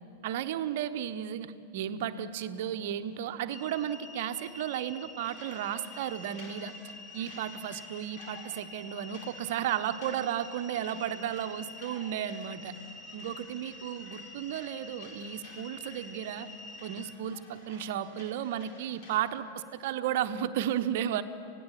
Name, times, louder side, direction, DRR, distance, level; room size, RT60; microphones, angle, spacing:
voice 1, 0.2-6.7 7.1-12.7 13.1-16.5 16.8-21.2, right 10 dB, 50° right, 11 dB, 1.0 m, -34 dB
sound 1, 2.2-4.8 5.2-19.2, left 2 dB, 50° left, 4.2 m, -55 dB
sound 2, 3.5-17.1, left 2 dB, ahead, 1.4 m, -48 dB
26.0 x 18.0 x 7.5 m, 2.6 s
figure-of-eight pair, 90°, 0 cm